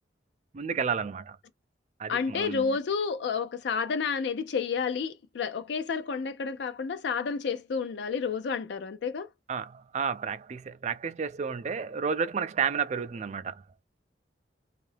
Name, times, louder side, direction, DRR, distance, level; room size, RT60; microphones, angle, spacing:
voice 1, 0.5-1.4 2.0-2.7 9.5-13.6, right 6 dB, 40° right, 0.4 m, -31 dB
voice 2, 2.1-9.3, left 5 dB, 70° left, 0.4 m, -30 dB
2.7 x 2.4 x 3.2 m
head